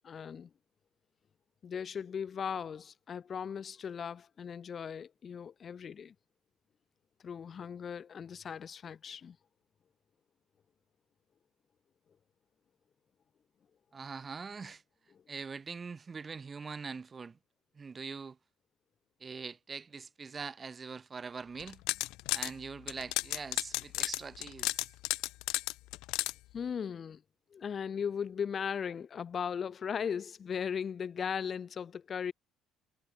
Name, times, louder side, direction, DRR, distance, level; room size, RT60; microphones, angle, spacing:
voice 1, 0.0-0.5 1.6-6.1 7.2-9.4 15.1-15.2 26.5-27.2 27.5-32.3, left 7 dB, 25° left, 2.0 m, -37 dB
voice 2, 13.9-14.8 15.3-17.4 17.7-18.4 19.2-21.8 22.3-24.9, right 5 dB, 20° right, 1.6 m, -43 dB
sound 1, 21.6-22.5 22.9-26.3, left 20 dB, 80° left, 1.2 m, -33 dB
cardioid pair, 175°, 0 cm